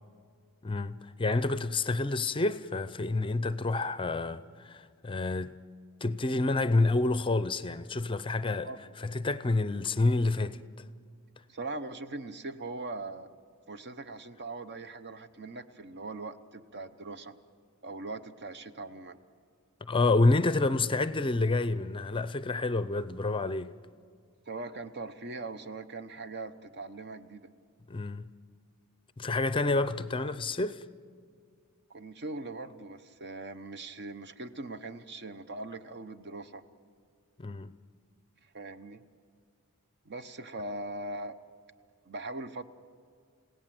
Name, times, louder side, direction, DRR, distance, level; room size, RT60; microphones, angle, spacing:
voice 1, 0.6-5.6 6.0-8.7 9.0-10.6 19.9-23.7 27.9-28.2 29.2-30.8 37.4-37.7, left 2 dB, 25° left, 0.5 m, -28 dB
voice 2, 11.5-13.3 13.7-17.3 17.8-19.2 24.5-27.5 31.9-36.6 38.5-39.0 40.0-41.4 42.1-42.6, right 2 dB, 50° right, 0.9 m, -40 dB
30.0 x 17.0 x 7.7 m
head